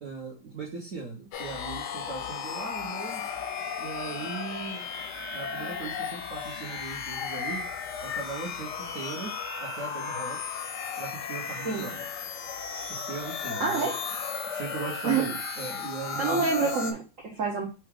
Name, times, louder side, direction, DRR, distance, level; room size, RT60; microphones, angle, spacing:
voice 1, 0.0-3.3 3.8-4.8 5.3-7.6 8.0-9.3 9.6-10.4 11.0-12.3 12.9-13.9 14.5-16.7, right 4 dB, 50° right, -4 dB, 1.0 m, -39 dB
sound 1, 1.3-16.9, left 6 dB, 70° left, 1.0 m, -35 dB
voice 2, 13.6-14.0 15.0-15.3 16.2-17.6, right 5 dB, 85° right, 0 dB, 0.6 m, -27 dB
4.6 x 2.4 x 4.7 m, 0.32 s
omnidirectional pair, 2.4 m